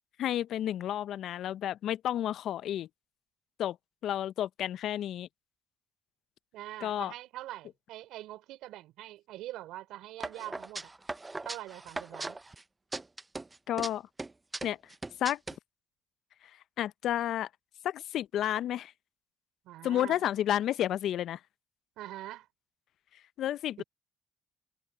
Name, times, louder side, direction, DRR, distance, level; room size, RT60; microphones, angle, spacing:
voice 1, 0.2-2.9 3.6-3.8 4.0-5.3 6.8-7.1 13.7-14.0 14.6-14.8 15.2-15.4 16.8-17.5 17.8-18.9 19.8-21.4 23.4-23.8, left 11 dB, 70° left, 0.5 m, -31 dB
voice 2, 6.5-10.9 11.4-12.4 19.6-20.2 22.0-22.5 23.8-23.9, right 15 dB, 80° right, 4.4 m, -44 dB
sound 1, 10.2-12.6 12.9-13.9 14.2-15.6, right 2 dB, 25° right, 0.6 m, -39 dB
supercardioid pair, 55°, 0 cm